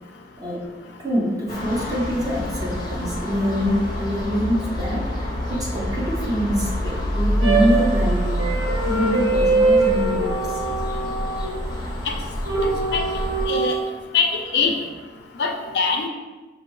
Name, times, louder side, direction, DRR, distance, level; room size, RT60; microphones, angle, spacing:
voice 1, 1.0-8.4 8.9-10.6, equal, 20° right, -4 dB, 0.8 m, -25 dB
sound 1, 1.5-13.5, equal, 20° left, 0.6 m, -27 dB
sound 2, 7.4-11.8 12.4-13.8, right 3 dB, 85° right, 1.4 m, -23 dB
voice 2, 12.6-13.0 13.5-13.7 14.1-14.8 15.4-16.1, left 5 dB, 65° left, 3 dB, 0.4 m, -23 dB
5.6 x 2.6 x 3.1 m, 1.2 s
head